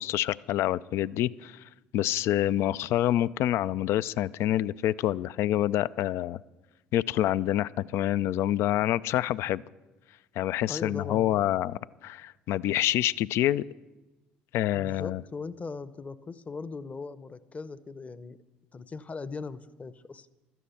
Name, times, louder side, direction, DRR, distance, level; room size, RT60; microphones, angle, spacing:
voice 1, 0.0-1.6 1.9-6.4 6.9-9.6 10.4-13.6 14.5-15.2, left 13 dB, 60° left, 19 dB, 0.4 m, -27 dB
voice 2, 10.7-11.5 14.7-18.4 18.7-20.3, left 4 dB, 30° left, 16 dB, 0.8 m, -39 dB
15.5 x 12.5 x 5.7 m, 1.1 s
hypercardioid pair, 60°, 5 cm